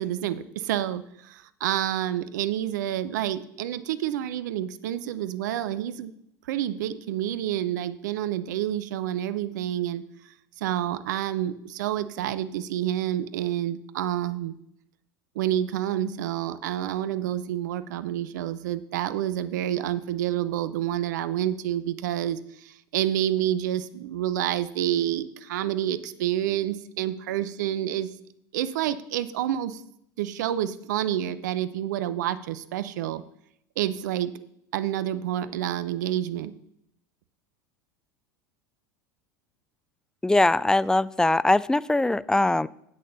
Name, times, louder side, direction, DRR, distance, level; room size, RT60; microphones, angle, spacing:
voice 1, 0.0-6.1 6.5-10.0 10.6-14.6 15.3-28.1 28.5-29.8 30.2-33.2 33.8-34.3 34.7-36.5, right 11 dB, 70° right, 14 dB, 0.7 m, -28 dB
voice 2, 40.2-42.7, left 2 dB, 5° left, 19 dB, 0.3 m, -21 dB
8.5 x 6.5 x 6.7 m, 0.74 s
hypercardioid pair, 80°, 10 cm